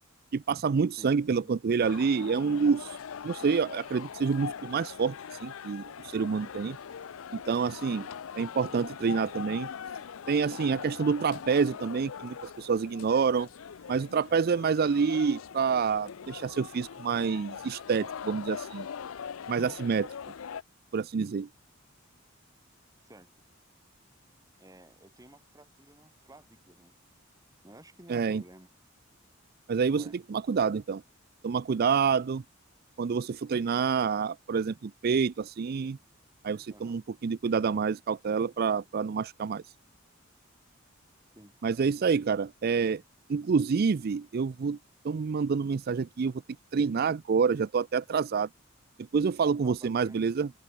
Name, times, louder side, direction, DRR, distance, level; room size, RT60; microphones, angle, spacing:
voice 1, 0.3-3.0 3.2-6.8 7.3-8.0 8.4-9.7 10.3-13.5 13.9-18.9 19.5-20.1 20.9-21.5 28.1-28.4 29.7-30.0 30.3-31.0 31.4-32.4 33.0-36.0 36.4-39.6 41.6-43.0 43.3-44.8 45.0-46.3 46.7-48.5 49.1-50.5, right 5 dB, 50° right, 0.4 m, -27 dB
voice 2, 1.0-1.5 7.8-8.1 19.5-19.8 23.0-23.3 24.6-27.0 27.6-28.7 29.9-30.2 36.7-37.0 41.3-41.6 49.6-50.3, right 1 dB, 15° right, 3.1 m, -54 dB
sound 1, 1.8-20.6, left 7 dB, 85° left, 0.5 m, -42 dB
open air
head